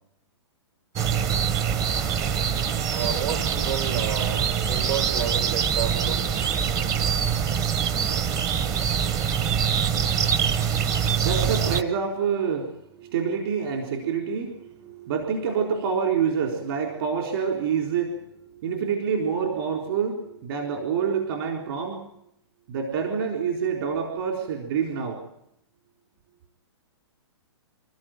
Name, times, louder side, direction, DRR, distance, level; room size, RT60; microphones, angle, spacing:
sound 1, 1.0-11.8, right 7 dB, 25° right, 0.9 m, -24 dB
voice 1, 2.9-6.2 6.5-7.1, right 8 dB, 70° right, 6 dB, 5.7 m, -31 dB
voice 2, 11.2-12.7 13.0-18.1 18.6-22.0 22.7-25.2, right 6 dB, 55° right, 2 dB, 4.1 m, -27 dB
28.0 x 14.0 x 9.2 m, 0.78 s
hypercardioid pair, 150°, 15 cm